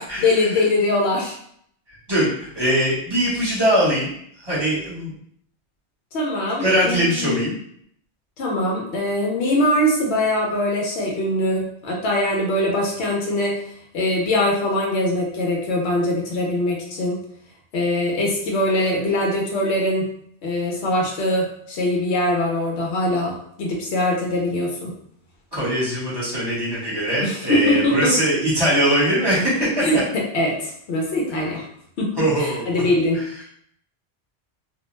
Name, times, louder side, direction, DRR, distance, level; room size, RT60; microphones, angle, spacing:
voice 1, 0.2-1.3 6.1-7.5 8.4-13.6 13.9-17.2 17.7-20.1 20.4-25.0 27.2-28.1 29.8-31.7 32.0-33.5, left 1 dB, 85° left, -1 dB, 0.9 m, -22 dB
voice 2, 1.9-5.1 6.6-7.6 25.5-29.8 32.2-32.8 33.1-33.2, equal, 25° right, -9 dB, 1.1 m, -21 dB
2.4 x 2.2 x 3.0 m, 0.66 s
omnidirectional pair, 1.1 m